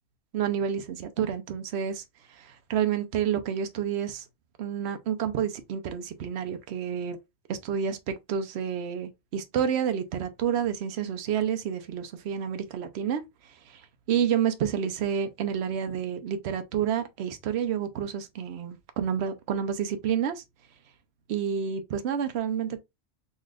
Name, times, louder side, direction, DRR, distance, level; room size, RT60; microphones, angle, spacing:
voice 1, 0.3-4.3 4.6-7.2 7.5-20.4 21.3-22.8, right 8 dB, 70° right, 0.9 m, -29 dB
4.0 x 3.1 x 2.4 m
omnidirectional pair, 1.2 m